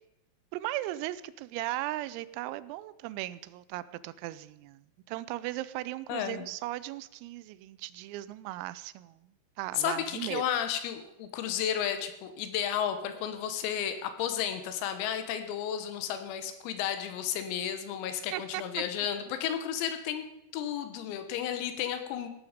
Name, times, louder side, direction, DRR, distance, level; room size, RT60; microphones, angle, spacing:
voice 1, 0.5-9.3 9.6-10.4 18.3-18.6, right 16 dB, 85° right, 16 dB, 3.3 m, -37 dB
voice 2, 6.1-6.5 9.8-20.2 20.5-22.3, left 9 dB, 90° left, 8 dB, 4.0 m, -33 dB
16.5 x 12.5 x 5.2 m, 0.88 s
omnidirectional pair, 6.0 m